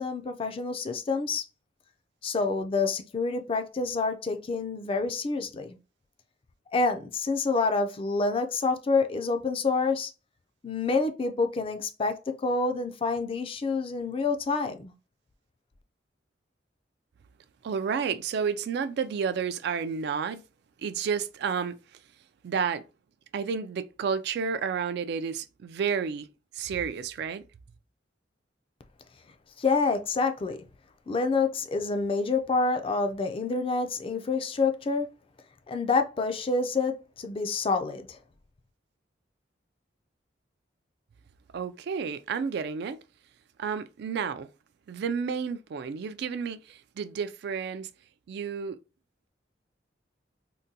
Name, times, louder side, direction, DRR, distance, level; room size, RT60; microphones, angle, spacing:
voice 1, 0.0-1.4 2.2-5.8 6.7-10.1 10.6-14.9 29.6-30.6 31.1-35.1 35.7-38.2, left 4 dB, 30° left, 0.4 m, -27 dB
voice 2, 17.6-20.4 20.8-21.7 22.4-22.8 23.3-26.3 26.5-27.4 41.5-43.0 43.6-44.5 44.9-47.9 48.3-48.8, right 6 dB, 60° right, 0.3 m, -31 dB
3.7 x 2.2 x 2.7 m
head